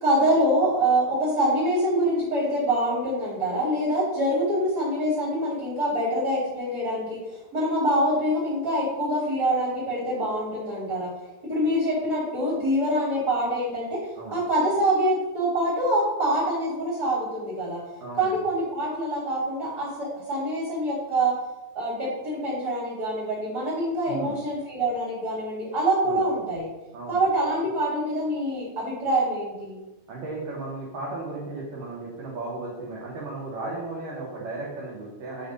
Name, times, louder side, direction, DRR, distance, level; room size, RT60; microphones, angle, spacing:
voice 1, 0.0-7.2 7.5-11.1 11.4-14.0 14.3-17.8 18.2-21.3 21.7-26.7 27.1-29.8, right 1 dB, 30° right, -9 dB, 1.8 m, -25 dB
voice 2, 18.0-18.4 24.1-24.4 26.1-26.2 26.9-27.2 30.1-35.5, right 2 dB, 75° right, -5 dB, 2.0 m, -35 dB
8.5 x 3.6 x 3.9 m, 1.1 s
omnidirectional pair, 5.3 m